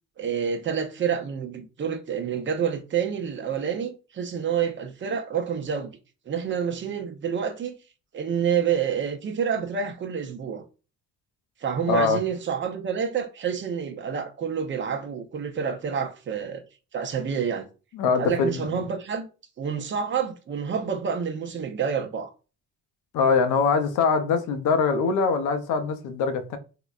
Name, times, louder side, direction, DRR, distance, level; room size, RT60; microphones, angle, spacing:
voice 1, 0.2-5.9 6.3-7.8 8.1-10.6 11.6-16.6 16.9-17.7 18.2-19.3 19.6-22.3, right 7 dB, 40° right, 0.6 m, -28 dB
voice 2, 11.9-12.2 18.0-18.8 23.1-26.6, left 5 dB, 85° left, 0.6 m, -23 dB
3.8 x 2.1 x 2.4 m
cardioid pair, 90°, 30 cm